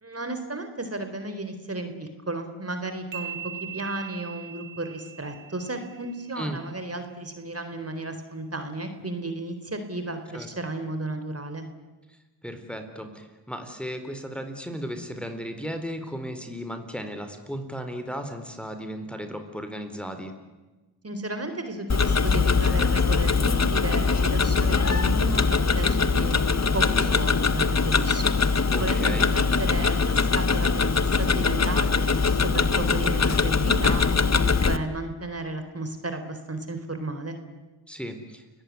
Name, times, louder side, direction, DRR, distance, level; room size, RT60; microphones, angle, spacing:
voice 1, 0.0-11.6 21.0-37.4, right 2 dB, 30° right, 8 dB, 4.2 m, -34 dB
sound 1, 3.1-6.7, right 8 dB, 65° right, 2.1 m, -41 dB
voice 2, 12.4-20.3 28.7-29.4 37.9-38.4, equal, ahead, 6 dB, 4.2 m, -35 dB
Tick-tock, 21.9-34.8, left 4 dB, 30° left, 1.6 m, -22 dB
30.0 x 17.0 x 9.8 m, 1.2 s
supercardioid pair, 45°, 50 cm